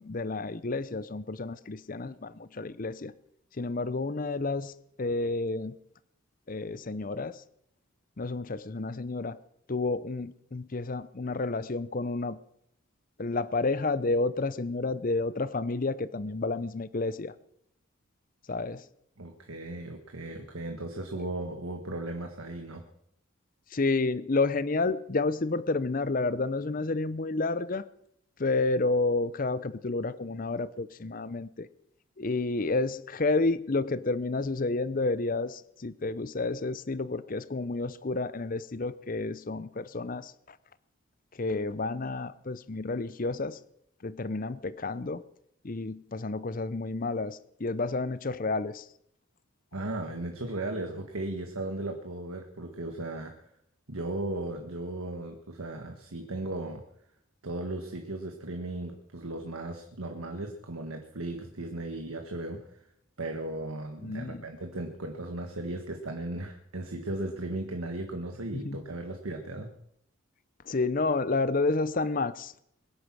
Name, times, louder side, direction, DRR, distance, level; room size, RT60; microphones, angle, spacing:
voice 1, 0.0-3.1 3.6-4.7 5.0-5.7 6.5-7.4 8.2-9.4 9.7-12.4 13.2-17.3 18.5-18.8 23.7-27.9 28.4-31.7 32.2-40.3 41.4-43.6 44.0-45.2 45.6-48.8 64.0-64.4 68.5-68.8 70.7-72.5, left 3 dB, 40° left, 16 dB, 0.6 m, -30 dB
voice 2, 19.2-22.8 49.7-53.5 53.9-56.8 57.4-62.8 63.2-69.7, right 2 dB, 90° right, 4 dB, 1.6 m, -36 dB
22.0 x 10.0 x 6.2 m, 0.74 s
head